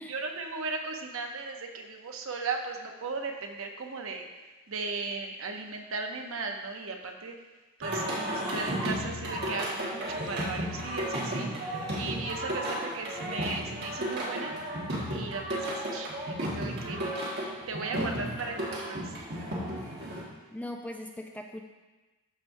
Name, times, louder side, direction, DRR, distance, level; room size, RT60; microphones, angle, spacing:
voice 1, 0.1-4.3 4.7-7.3 7.8-14.5 15.1-17.3 17.7-19.1, right 4 dB, 65° right, 3 dB, 0.8 m, -37 dB
Singing, 7.8-20.2, right 1 dB, 50° right, 1.7 m, -33 dB
voice 2, 20.5-21.6, left 1 dB, 5° left, 2 dB, 0.4 m, -39 dB
13.0 x 4.6 x 2.7 m, 1.2 s
head